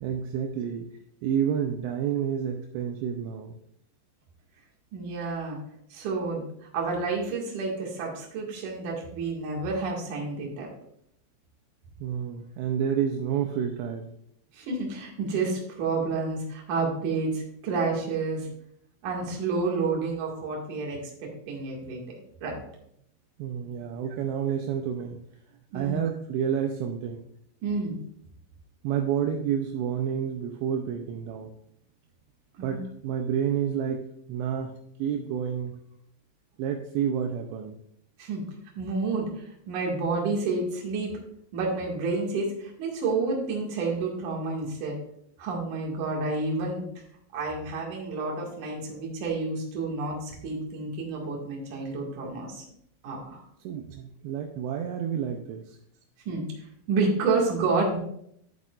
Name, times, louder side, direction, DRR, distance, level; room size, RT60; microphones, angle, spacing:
voice 1, 0.0-0.9 1.2-3.6 12.0-14.1 23.4-25.2 25.7-27.2 28.8-31.5 32.6-35.8 36.6-37.8 53.6-55.8, right 8 dB, 80° right, 3 dB, 2.6 m, -29 dB
voice 2, 4.9-5.6 5.9-10.7 14.5-18.5 19.0-22.0 22.4-22.6 25.7-26.0 27.6-27.9 32.6-32.9 38.2-38.4 38.8-41.1 41.5-45.0 45.4-46.8 47.3-52.6 53.0-53.4 56.3-56.4 56.9-58.0, right 3 dB, 55° right, -1 dB, 2.9 m, -29 dB
11.5 x 7.5 x 2.4 m, 0.71 s
omnidirectional pair, 5.3 m